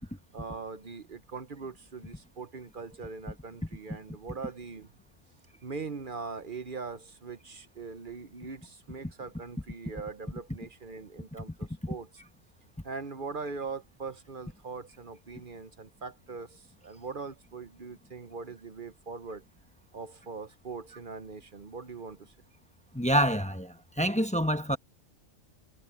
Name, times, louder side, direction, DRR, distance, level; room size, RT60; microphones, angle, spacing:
voice 1, 0.3-4.9 5.6-12.1 12.8-19.4 19.9-22.3, right 4 dB, 45° right, 0.9 m, -41 dB
voice 2, 22.9-24.8, equal, 5° left, 0.9 m, -27 dB
omnidirectional pair, 1.4 m